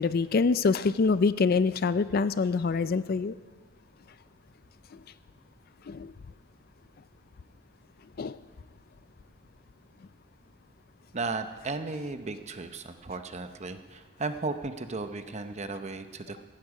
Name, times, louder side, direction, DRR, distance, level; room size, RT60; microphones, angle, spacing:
voice 1, 0.0-3.4 4.9-5.0 5.9-6.1 8.2-8.4, left 4 dB, 45° left, 14 dB, 0.4 m, -25 dB
voice 2, 11.1-16.4, right 3 dB, 35° right, 9 dB, 0.8 m, -35 dB
16.0 x 15.5 x 4.9 m, 1.4 s
head